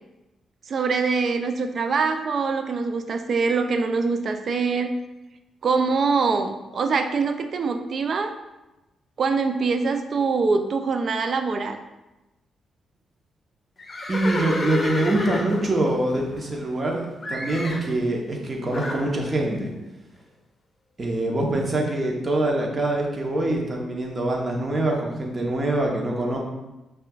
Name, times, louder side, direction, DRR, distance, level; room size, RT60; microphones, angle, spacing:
voice 1, 0.7-4.9 5.6-8.3 9.2-11.8, right 4 dB, 55° right, 8 dB, 0.4 m, -24 dB
Livestock farm animals working animals, 13.8-16.9 17.2-17.9 18.7-19.1, left 2 dB, 40° left, 0.7 m, -30 dB
voice 2, 14.1-19.7 21.0-26.4, right 1 dB, 40° right, 0 dB, 1.0 m, -24 dB
5.5 x 2.5 x 2.4 m, 1.0 s
hypercardioid pair, 45°, 0 cm